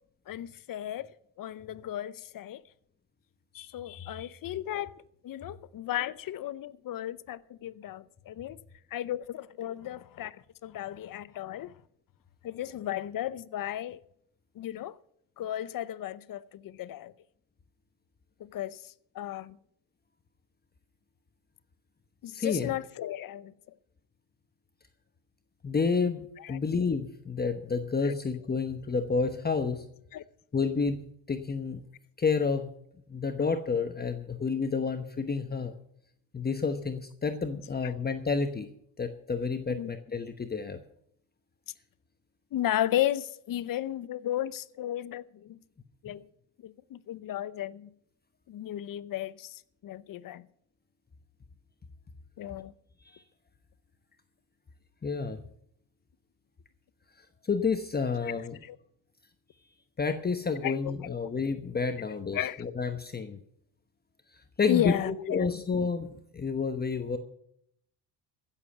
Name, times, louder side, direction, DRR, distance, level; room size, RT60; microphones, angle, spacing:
voice 1, 0.3-1.1 1.4-2.6 3.5-4.9 5.2-8.6 8.9-11.8 12.4-14.0 14.5-15.0 15.4-17.1 18.4-19.6 22.2-23.5 26.4-26.6 28.0-28.1 30.1-30.2 37.8-37.9 39.7-40.0 42.5-45.6 46.0-46.2 46.6-47.9 48.5-50.5 52.4-52.7 58.2-58.3 58.6-58.8 60.6-61.2 62.3-62.6 64.7-65.5, left 12 dB, 55° left, 0.8 m, -34 dB
voice 2, 22.3-22.7 25.6-29.8 30.5-31.0 31.3-31.8 32.2-32.7 33.1-35.7 36.3-38.7 39.0-40.8 53.0-53.2 55.0-55.4 57.4-58.6 60.0-63.4 64.6-67.2, left 5 dB, 25° left, 1.0 m, -30 dB
15.5 x 7.4 x 7.9 m
cardioid pair, 100°, 40 cm